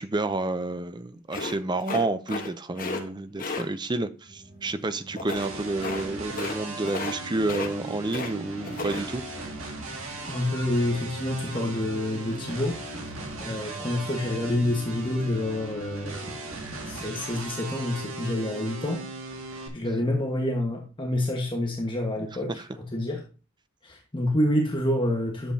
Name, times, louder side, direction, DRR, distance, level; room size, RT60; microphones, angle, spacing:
voice 1, 0.0-9.2, right 2 dB, 20° right, 0.5 m, -30 dB
sound 1, 1.3-2.5 2.7-3.0 3.4-3.6 5.2-5.5 5.8-6.0 6.3-6.6 6.8-7.2 7.4-8.3 8.6-9.0, left 3 dB, 40° left, 1.2 m, -33 dB
sound 2, 4.2-17.2, right 1 dB, 45° right, 4.2 m, -48 dB
sound 3, 5.4-19.7, right 2 dB, 65° right, 1.8 m, -38 dB
voice 2, 10.3-12.8 13.4-16.3 16.9-19.0 19.7-23.2 23.8-25.5, left 1 dB, 20° left, 1.3 m, -28 dB
10.0 x 7.4 x 2.8 m
head